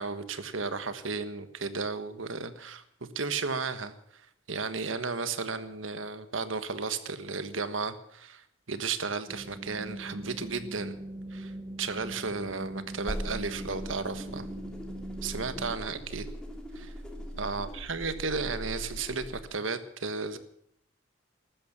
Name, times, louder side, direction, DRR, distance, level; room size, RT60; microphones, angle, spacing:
voice 1, 0.0-3.9 4.5-11.0 11.3-11.5 11.8-14.5 15.2-16.3 16.7-16.9 17.4-20.4, right 4 dB, 85° right, 11 dB, 1.4 m, -34 dB
sound 1, 9.3-15.7, right 1 dB, 15° right, 1.0 m, -41 dB
sound 2, 13.0-19.5, equal, 5° left, 2.8 m, -40 dB
14.5 x 13.0 x 7.3 m, 0.70 s
head